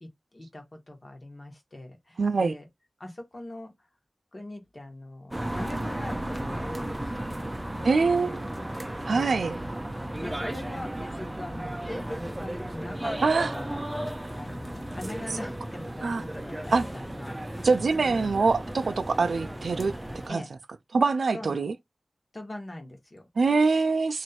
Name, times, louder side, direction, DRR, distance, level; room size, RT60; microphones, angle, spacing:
voice 1, 0.0-2.7 3.0-3.9 4.3-7.9 8.2-8.5 9.1-9.6 10.2-17.7 18.1-18.3 20.3-20.5 21.3-21.7 22.3-23.2, left 1 dB, 35° left, 1.3 m, -42 dB
voice 2, 2.2-2.5 7.8-8.5 9.0-9.6 13.2-13.5 16.0-16.2 16.7-16.8 17.6-20.0 20.3-20.4 20.9-21.7 23.4-24.2, right 4 dB, 90° right, 0.3 m, -24 dB
sound 1, 5.3-20.3, right 1 dB, 15° right, 0.6 m, -34 dB
3.1 x 2.6 x 4.2 m
wide cardioid pair, 95°, 0 cm